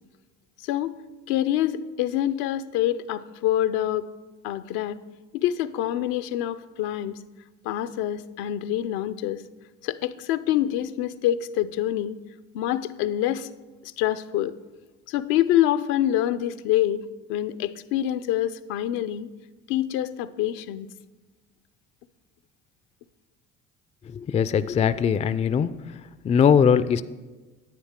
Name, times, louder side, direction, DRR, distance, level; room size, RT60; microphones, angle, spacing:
voice 1, 0.6-0.9 1.3-4.1 4.4-5.0 5.3-7.2 7.6-9.4 9.8-12.2 12.5-13.5 13.8-14.5 15.1-17.0 17.3-19.3 19.7-20.9, left 12 dB, 75° left, 12 dB, 0.6 m, -26 dB
voice 2, 24.3-25.8 26.2-27.0, left 7 dB, 20° left, 15 dB, 0.3 m, -20 dB
10.5 x 9.2 x 3.6 m, 1.2 s
hypercardioid pair, 65°, 36 cm